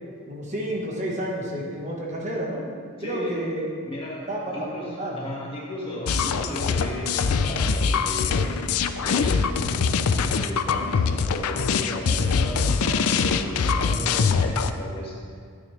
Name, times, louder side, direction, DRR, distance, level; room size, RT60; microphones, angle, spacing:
voice 1, 0.3-2.7 3.0-3.7 4.3-5.2, right 1 dB, 30° right, -2 dB, 1.3 m, -30 dB
voice 2, 3.0-3.4 3.8-15.2, left 1 dB, 25° left, -4 dB, 1.8 m, -35 dB
sound 1, 6.1-14.7, left 5 dB, 80° left, 0.5 m, -23 dB
12.5 x 9.2 x 3.3 m, 2.2 s
head